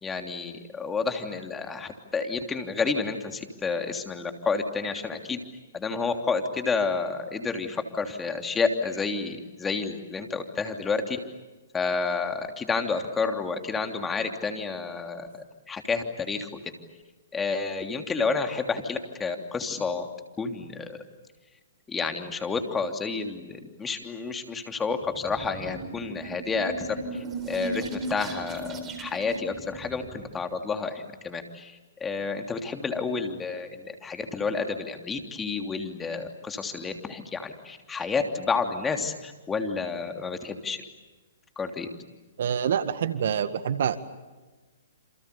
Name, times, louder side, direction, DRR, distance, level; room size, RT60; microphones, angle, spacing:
voice 1, 0.0-5.4 5.7-11.2 11.7-15.3 15.7-16.5 17.3-20.1 20.4-21.0 21.9-27.0 27.5-31.7 32.0-40.8 41.6-41.9, left 4 dB, 15° left, 5 dB, 3.1 m, -30 dB
sound 1, 25.0-30.4, right 2 dB, 20° right, 3.8 m, -37 dB
voice 2, 42.4-44.0, right 8 dB, 60° right, 12 dB, 1.8 m, -26 dB
28.5 x 28.0 x 7.0 m, 1.2 s
hypercardioid pair, 130°, 0 cm